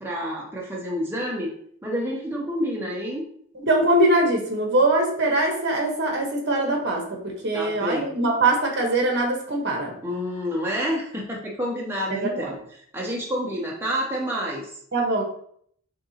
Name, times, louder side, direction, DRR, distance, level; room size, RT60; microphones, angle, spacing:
voice 1, 0.0-1.5 1.8-3.2 7.5-8.1 10.0-12.6 12.9-14.7, equal, 10° right, -3 dB, 0.5 m, -28 dB
voice 2, 3.6-10.0 12.1-12.6 14.9-15.2, right 2 dB, 55° right, 1 dB, 1.1 m, -22 dB
6.3 x 2.9 x 2.7 m, 0.65 s
head